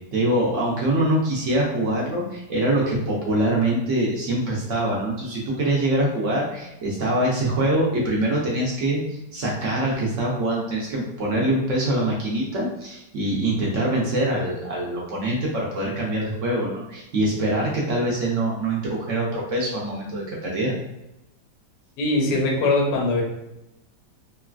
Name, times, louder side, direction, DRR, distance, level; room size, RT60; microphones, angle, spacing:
voice 1, 0.1-20.7, right 1 dB, 65° right, -4 dB, 0.8 m, -24 dB
voice 2, 22.0-23.2, left 2 dB, 80° left, 0 dB, 1.3 m, -21 dB
3.1 x 2.3 x 2.3 m, 0.90 s
omnidirectional pair, 1.9 m